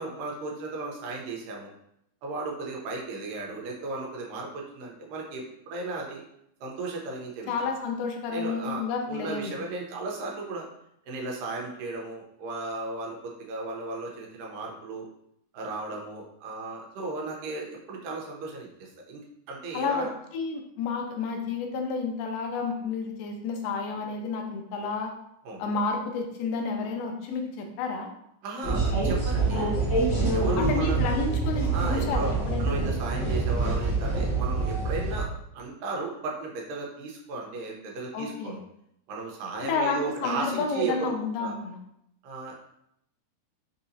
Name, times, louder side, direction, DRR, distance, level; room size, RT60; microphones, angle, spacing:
voice 1, 0.0-1.7 2.2-6.2 6.6-7.5 8.3-10.7 11.1-15.1 15.5-19.2 19.5-20.1 25.5-25.6 28.4-29.8 30.3-31.0 31.7-32.3 32.6-35.3 35.5-38.6 39.1-41.1 41.4-41.5 42.2-42.5, right 3 dB, 90° right, -1 dB, 2.5 m, -35 dB
voice 2, 7.5-9.5 19.7-25.1 25.6-28.1 30.6-32.7 38.1-38.6 39.6-41.8, left 4 dB, 80° left, 3 dB, 2.2 m, -30 dB
sound 1, 28.6-35.2, right 3 dB, 45° left, 0.8 m, -26 dB
5.9 x 2.8 x 2.7 m, 0.77 s
omnidirectional pair, 3.8 m